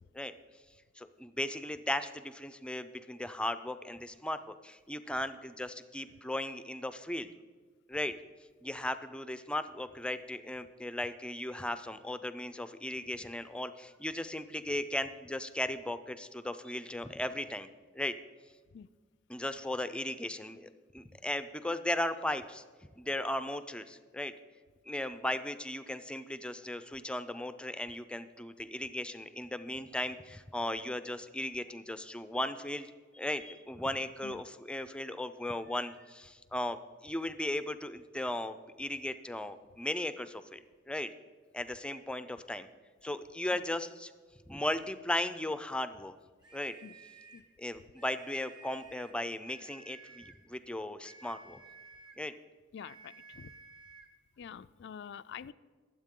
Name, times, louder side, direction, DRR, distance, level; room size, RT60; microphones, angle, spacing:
voice 1, 1.0-7.3 7.9-8.1 8.6-17.7 17.9-18.1 19.3-22.6 23.0-24.3 24.9-32.9 33.1-40.6 40.9-41.1 41.5-42.7 43.0-44.1 44.5-46.1 46.5-46.7 47.6-51.6 52.2-52.3, left 1 dB, 5° left, 11 dB, 0.5 m, -37 dB
sound 1, 46.4-47.5 47.9-49.2 49.5-50.4 51.0-52.3 52.8-54.1, right 4 dB, 25° right, 1.4 m, -54 dB
voice 2, 52.7-53.5 54.4-55.5, left 7 dB, 60° left, 15 dB, 0.4 m, -46 dB
22.0 x 8.0 x 3.7 m, 1.5 s
head